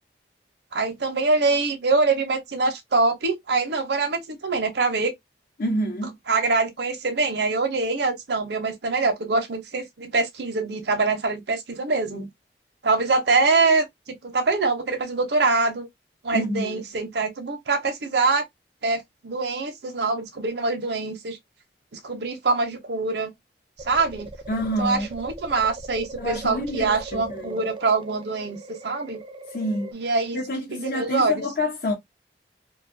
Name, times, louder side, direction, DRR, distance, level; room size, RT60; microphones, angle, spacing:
voice 1, 0.7-5.1 6.3-12.3 12.8-15.9 16.2-18.5 18.8-21.4 21.9-23.3 23.8-24.3 24.8-29.2 29.9-30.4 30.7-31.4, right 3 dB, 75° right, 0.7 m, -24 dB
voice 2, 5.6-6.2 16.3-16.8 24.5-25.1 26.2-27.6 29.5-30.0 30.3-31.9, left 1 dB, 55° left, 0.7 m, -28 dB
sound 1, 23.8-29.9, right 2 dB, 30° right, 0.4 m, -40 dB
2.5 x 2.3 x 2.5 m
head